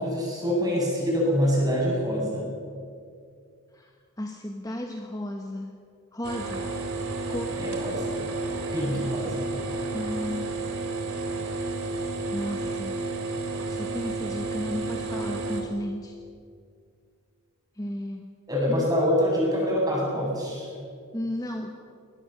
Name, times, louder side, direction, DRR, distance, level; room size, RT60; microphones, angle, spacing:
voice 1, 0.0-2.5 7.6-8.3 8.7-9.4 18.5-20.7, equal, 20° right, -3 dB, 7.8 m, -25 dB
voice 2, 3.7-5.7 6.1-6.6 7.3-7.6 9.9-10.5 12.3-13.0 13.7-16.1 17.7-18.3 18.7-18.9 21.1-21.7, left 1 dB, 15° left, 3 dB, 1.2 m, -34 dB
sound 1, 6.2-15.6, right 3 dB, 85° right, 3.4 m, -31 dB
22.5 x 19.0 x 7.1 m, 2.3 s
head